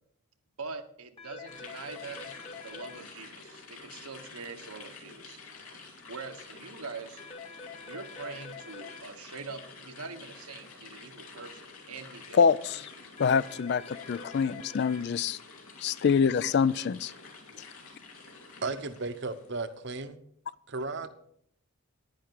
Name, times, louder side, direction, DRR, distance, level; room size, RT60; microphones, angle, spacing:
voice 1, 0.6-2.4 2.6-5.4 6.1-7.2 7.8-12.4, right 4 dB, 90° right, 6 dB, 1.2 m, -43 dB
sound 1, 1.2-3.0 7.2-9.0 13.2-15.0, left 5 dB, 25° left, 1.3 m, -45 dB
sound 2, 1.5-19.7, left 4 dB, 80° left, 2.7 m, -49 dB
voice 2, 12.3-12.9 13.2-15.4 15.8-17.1, left 6 dB, 50° left, 19 dB, 0.3 m, -25 dB
voice 3, 18.6-20.2 20.7-21.1, right 3 dB, 55° right, 10 dB, 0.8 m, -34 dB
10.5 x 10.0 x 4.7 m, 0.67 s
head